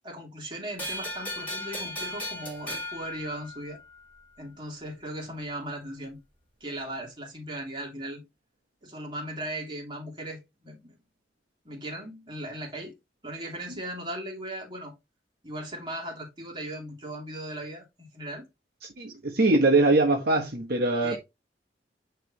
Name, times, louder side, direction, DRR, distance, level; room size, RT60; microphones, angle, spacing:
voice 1, 0.0-3.8 4.4-6.2 6.6-8.2 8.8-11.0 11.6-12.9 13.2-14.9 15.4-18.5 21.0-21.2, right 1 dB, 25° right, 2.6 m, -38 dB
sound 1, 0.8-4.0, left 1 dB, 10° left, 3.1 m, -36 dB
voice 2, 19.0-21.2, right 2 dB, 60° right, 1.2 m, -22 dB
10.0 x 3.4 x 3.0 m
head